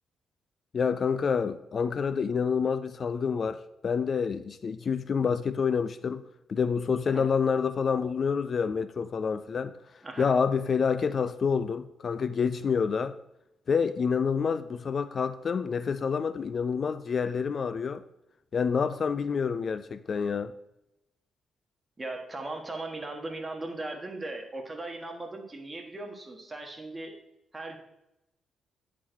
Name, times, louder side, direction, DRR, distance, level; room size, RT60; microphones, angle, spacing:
voice 1, 0.7-6.2 6.5-9.7 10.2-13.1 13.7-18.0 18.5-20.5, left 6 dB, 50° left, 0.3 m, -28 dB
voice 2, 22.0-27.1 27.5-27.8, right 2 dB, 20° right, 1.5 m, -38 dB
9.7 x 3.9 x 4.5 m
cardioid pair, 75°, 0 cm